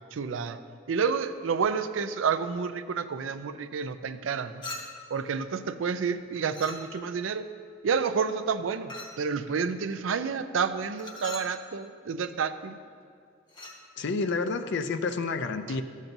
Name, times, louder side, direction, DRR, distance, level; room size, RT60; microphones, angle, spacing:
voice 1, 0.1-0.6 0.9-4.6 5.1-7.5 7.8-12.8 15.7-15.8, right 6 dB, 70° right, 11 dB, 0.4 m, -29 dB
Chink clink, 4.6-5.2 6.5-7.2 8.9-9.3 11.0-11.6 13.5-13.8, left 2 dB, 25° left, 0.9 m, -40 dB
voice 2, 14.0-15.8, left 4 dB, 65° left, 9 dB, 0.5 m, -29 dB
13.0 x 7.3 x 2.6 m, 2.2 s
head